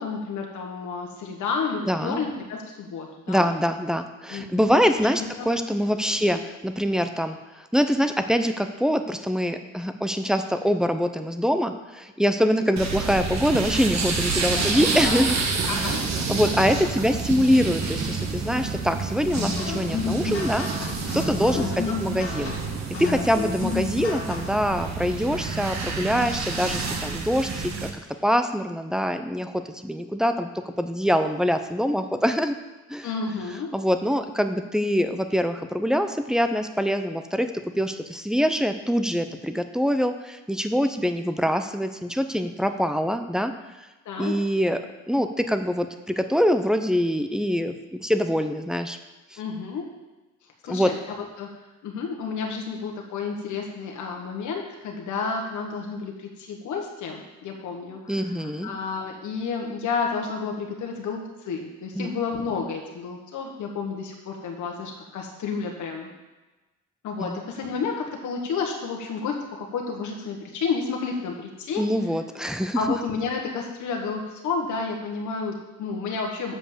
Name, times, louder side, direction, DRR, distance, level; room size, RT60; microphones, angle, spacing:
voice 1, 0.0-3.5 4.3-4.8 5.2-5.5 6.1-6.2 14.4-15.2 15.7-16.0 21.5-22.0 22.4-22.8 33.0-33.7 44.0-44.3 49.4-49.9 50.6-51.5 51.8-58.3 58.6-66.1 67.0-71.9 72.7-76.6, left 5 dB, 75° left, 1 dB, 1.4 m, -31 dB
voice 2, 1.9-2.2 3.3-15.4 15.7-15.9 16.2-22.5 23.0-32.6 32.9-33.1 33.7-37.5 37.8-43.5 44.2-44.8 45.1-45.9 46.2-49.0 49.3-49.4 50.7-50.9 58.1-58.7 61.9-62.1 67.2-67.4 71.8-72.8, equal, ahead, 8 dB, 0.7 m, -24 dB
sound 1, 12.8-27.9, right 4 dB, 60° right, 1.4 m, -29 dB
sound 2, 19.3-24.6, left 5 dB, 45° left, 2.0 m, -32 dB
7.2 x 5.3 x 7.3 m, 1.1 s
cardioid pair, 90°, 30 cm